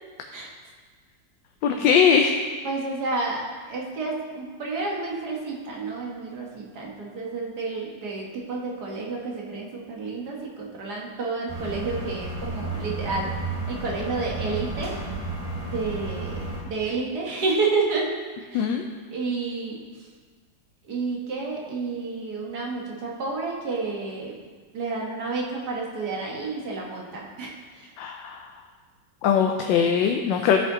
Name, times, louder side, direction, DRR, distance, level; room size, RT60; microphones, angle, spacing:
voice 1, 1.6-2.3 18.5-18.9 28.0-28.5 29.2-30.6, left 7 dB, 85° left, 3 dB, 1.3 m, -21 dB
voice 2, 2.6-13.3 13.7-15.0 15.7-18.2 18.5-18.7 19.1-20.1 20.8-24.4 24.7-27.9, right 3 dB, 60° right, -2 dB, 1.9 m, -30 dB
sound 1, 11.5-16.6, right 3 dB, 20° right, 1.2 m, -32 dB
14.0 x 5.2 x 3.8 m, 1.5 s
omnidirectional pair, 2.0 m